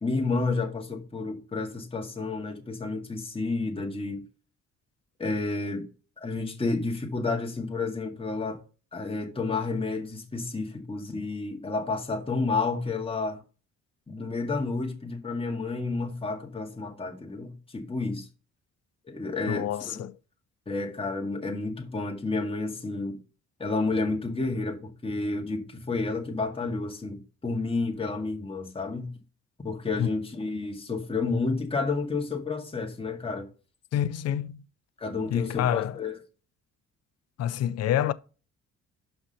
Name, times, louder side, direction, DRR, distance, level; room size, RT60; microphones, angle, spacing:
voice 1, 0.0-4.2 5.2-5.8 6.2-8.6 8.9-13.4 14.1-18.3 19.1-20.1 20.7-23.2 23.6-29.1 29.6-33.5 35.0-36.2, left 3 dB, 20° left, 1.9 m, -30 dB
voice 2, 19.5-20.1 30.0-30.1 33.9-34.6 35.3-36.0 37.4-38.1, left 11 dB, 55° left, 0.6 m, -27 dB
5.8 x 5.7 x 5.5 m
cardioid pair, 90°, 30 cm